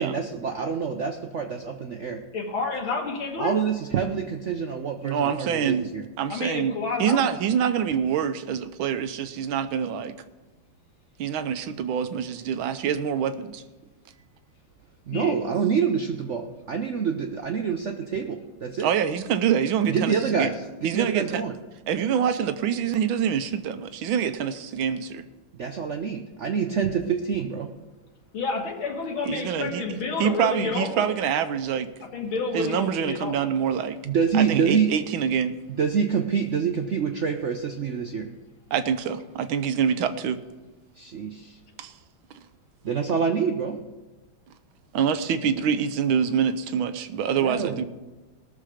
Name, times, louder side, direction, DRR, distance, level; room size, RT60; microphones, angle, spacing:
voice 1, 0.0-2.2 3.4-6.1 15.1-18.9 19.9-21.6 25.5-27.7 34.0-35.0 35.8-38.3 41.0-41.6 42.8-43.8 47.4-47.8, right 6 dB, 70° right, 5 dB, 0.7 m, -26 dB
voice 2, 2.3-3.6 6.3-7.2 15.1-15.4 28.3-31.1 32.1-33.4, left 4 dB, 85° left, -1 dB, 2.4 m, -29 dB
voice 3, 5.0-5.9 6.2-10.2 11.2-13.6 18.8-20.5 20.8-21.4 21.9-25.2 29.3-29.8 30.2-31.9 32.5-34.0 34.3-35.5 38.7-40.4 41.8-41.9 44.9-47.8, right 8 dB, 85° right, 10 dB, 1.6 m, -25 dB
18.5 x 6.7 x 5.0 m, 1.1 s
omnidirectional pair, 2.2 m